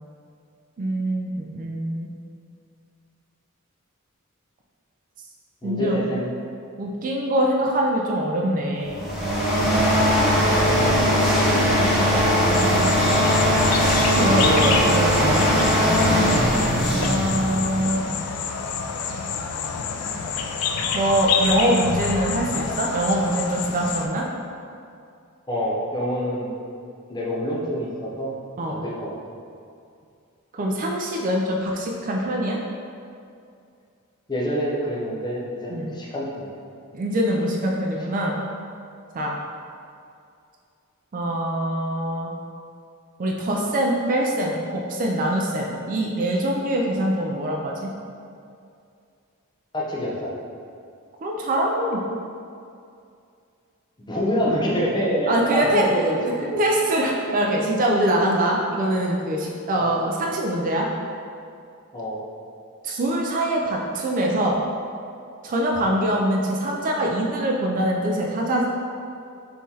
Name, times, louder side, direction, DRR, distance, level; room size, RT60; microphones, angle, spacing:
voice 1, 0.8-2.1 5.6-6.0 6.8-9.0 14.2-15.5 17.0-18.0 20.9-24.3 28.6-28.8 30.5-32.6 35.7-35.9 36.9-38.4 39.1-39.3 41.1-42.3 43.2-47.9 51.2-52.0 55.3-55.8 56.6-60.9 62.8-64.6 65.4-68.7, right 1 dB, 40° right, -1 dB, 0.4 m, -23 dB
voice 2, 5.6-6.3 10.6-12.2 25.5-26.5 27.1-28.3 28.7-29.2 34.3-36.6 49.7-50.3 54.0-56.6 59.8-60.0 61.9-62.2 65.8-66.0, equal, 20° left, -4 dB, 0.7 m, -27 dB
sound 1, 8.8-18.0, equal, ahead, 0.9 m, -20 dB
sound 2, 12.5-24.1, left 6 dB, 80° left, 0.4 m, -28 dB
5.6 x 3.1 x 2.8 m, 2.4 s
head